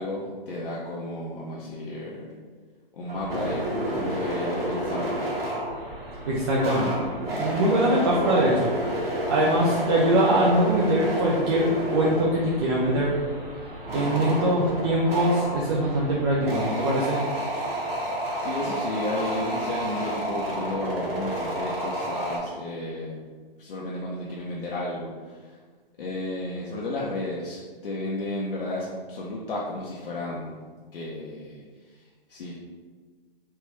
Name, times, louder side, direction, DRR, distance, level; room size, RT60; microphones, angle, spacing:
voice 1, 0.0-2.3 2.9-3.6 3.9-5.2 18.4-23.2 23.6-25.6 26.0-30.5 30.9-31.6 31.9-32.0 32.3-32.5, left 1 dB, 65° left, -5 dB, 0.6 m, -33 dB
sound 1, 3.1-22.4, right 1 dB, 80° right, 0.9 m, -30 dB
voice 2, 6.2-8.7 9.3-13.1 13.9-17.2, right 1 dB, 30° right, -5 dB, 0.3 m, -23 dB
3.3 x 2.3 x 3.0 m, 1.5 s
hypercardioid pair, 130°, 29 cm